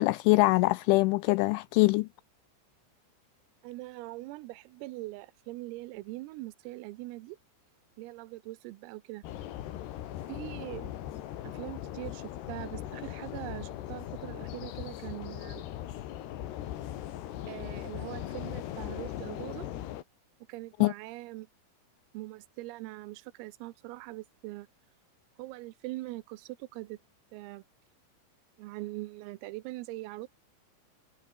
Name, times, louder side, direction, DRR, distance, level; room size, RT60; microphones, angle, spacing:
voice 1, 0.0-2.1 20.8-20.9, left 23 dB, 85° left, 2.7 m, -23 dB
voice 2, 3.6-7.4 8.0-9.2 10.3-10.9 11.4-15.7 17.5-19.7 20.5-21.5 22.1-24.7 25.4-27.0 27.3-27.6 28.6-30.3, right 19 dB, 90° right, 3.6 m, -42 dB
sound 1, 9.2-20.0, left 12 dB, 65° left, 3.3 m, -39 dB
omnidirectional pair, 6.0 m